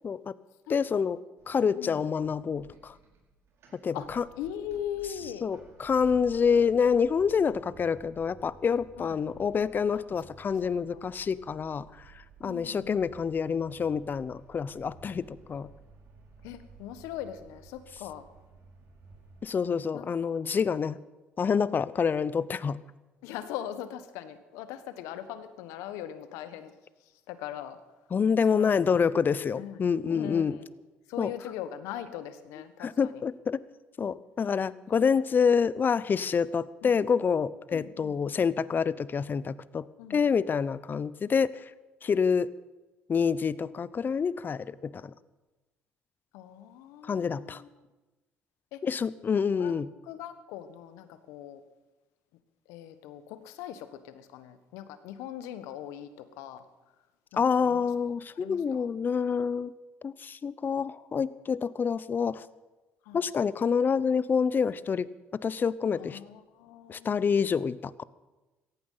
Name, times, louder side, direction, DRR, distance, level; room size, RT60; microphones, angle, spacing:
voice 1, 0.0-0.3 0.7-1.2 1.5-2.9 3.7-4.2 5.4-11.9 12.4-15.7 19.4-21.0 21.4-22.8 28.1-30.6 31.2-31.3 32.8-33.6 34.0-41.5 42.0-42.5 43.1-45.1 47.0-47.6 48.8-49.9 57.3-59.7 60.0-62.5 63.1-65.1 65.4-66.2 66.9-68.0, left 6 dB, 40° left, 18 dB, 0.8 m, -27 dB
voice 2, 0.7-1.2 1.7-2.0 3.9-4.1 4.4-5.5 9.0-9.2 9.9-10.0 10.6-11.0 12.4-12.9 16.4-18.3 19.9-20.3 21.5-21.9 23.2-26.7 27.3-27.8 28.5-29.8 30.0-30.7 31.1-33.2 36.8-36.9 37.7-38.2 40.0-40.2 46.3-47.7 48.7-48.8 49.5-49.7 50.1-51.6 52.7-56.6 57.3-57.9 58.4-58.9 63.0-63.2 65.9-67.2, left 11 dB, 80° left, 12 dB, 1.4 m, -41 dB
sound 1, 1.4-19.5, right 5 dB, 60° right, 5.1 m, -54 dB
17.0 x 15.0 x 5.7 m, 1.1 s
supercardioid pair, 65°, 5 cm